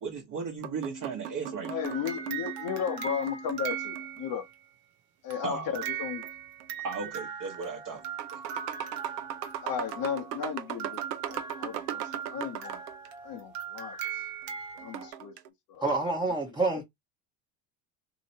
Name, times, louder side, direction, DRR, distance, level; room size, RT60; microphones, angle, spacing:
voice 1, 0.0-1.7 5.4-5.7 6.8-8.0 8.3-8.4, right 5 dB, 40° right, 1.0 m, -36 dB
sound 1, 0.6-4.3 5.8-6.7 7.4-7.6 8.0-13.1 14.8-15.5, right 9 dB, 85° right, 0.7 m, -39 dB
voice 2, 1.7-4.5 5.2-6.3 9.6-11.0 11.3-12.8 13.2-14.0 14.8-15.4 15.7-15.8, left 8 dB, 45° left, 0.8 m, -35 dB
sound 2, 1.8-4.5 5.3-15.1, right 7 dB, 70° right, 1.2 m, -39 dB
voice 3, 15.8-16.8, right 3 dB, 10° right, 0.8 m, -27 dB
3.0 x 2.9 x 2.8 m
supercardioid pair, 90°, 48 cm